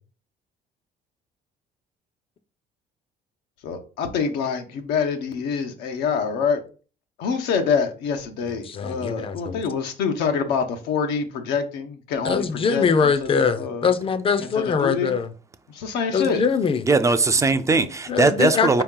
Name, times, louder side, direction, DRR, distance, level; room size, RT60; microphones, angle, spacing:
voice 1, 3.6-6.6 7.2-13.9 14.5-15.1 15.7-16.4, left 6 dB, 90° left, 0.8 m, -26 dB
voice 2, 8.6-9.5 12.2-15.3 16.1-16.9 18.1-18.8, left 6 dB, 35° left, 0.5 m, -22 dB
voice 3, 16.9-18.8, right 3 dB, 20° right, 0.4 m, -19 dB
4.6 x 2.9 x 3.7 m
cardioid pair, 110°, 17 cm